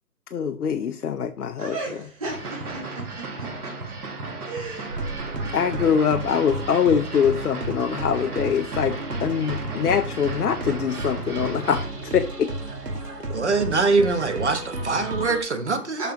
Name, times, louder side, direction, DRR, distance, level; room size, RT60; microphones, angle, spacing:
voice 1, 0.3-1.8 5.5-12.5, left 7 dB, 70° left, 0.6 m, -23 dB
voice 2, 1.6-3.7 4.4-4.9 16.0-16.1, right 3 dB, 20° right, 1.7 m, -34 dB
sound 1, 2.3-11.9, right 3 dB, 65° right, 1.6 m, -35 dB
sound 2, 4.9-15.4, right 2 dB, 80° right, 1.6 m, -33 dB
voice 3, 13.3-16.0, right 3 dB, 45° right, 1.0 m, -23 dB
11.5 x 3.9 x 2.8 m
figure-of-eight pair, 165°, 47 cm